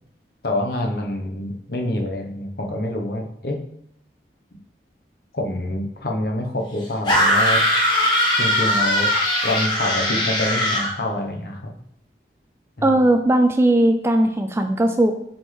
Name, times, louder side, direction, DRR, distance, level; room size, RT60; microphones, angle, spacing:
voice 1, 0.4-3.6 5.3-7.6 8.4-9.1 9.4-11.7 12.8-13.0, left 1 dB, 55° left, 2 dB, 0.9 m, -26 dB
sound 1, 7.1-10.9, left 1 dB, 25° left, 1.3 m, -20 dB
voice 2, 12.8-15.1, right 1 dB, 15° right, 6 dB, 0.3 m, -18 dB
7.4 x 4.4 x 3.3 m, 0.75 s
head